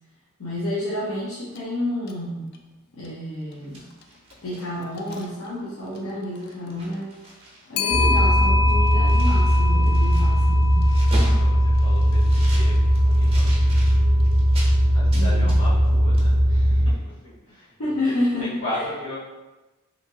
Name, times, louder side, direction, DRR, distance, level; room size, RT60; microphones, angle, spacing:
voice 1, 0.4-2.5 2.9-3.8 4.4-7.1 7.7-10.8 15.1-15.6 17.8-18.9, left 1 dB, 85° left, -8 dB, 0.6 m, -29 dB
Clock, 1.6-1.7 2.1-2.2 5.0-5.2 7.8-12.0, left 4 dB, 50° left, 0.3 m, -27 dB
sound 1, 3.5-5.5 5.9-6.1 6.4-7.7 7.9-14.7 15.1-15.9 16.2-16.3, right 1 dB, 30° right, 0.6 m, -39 dB
sound 2, 7.9-16.9, equal, 80° right, 0.4 m, -18 dB
voice 2, 11.2-13.8 14.9-18.1 18.4-19.2, left 1 dB, 65° left, -7 dB, 1.2 m, -36 dB
2.8 x 2.6 x 2.7 m, 1.1 s
head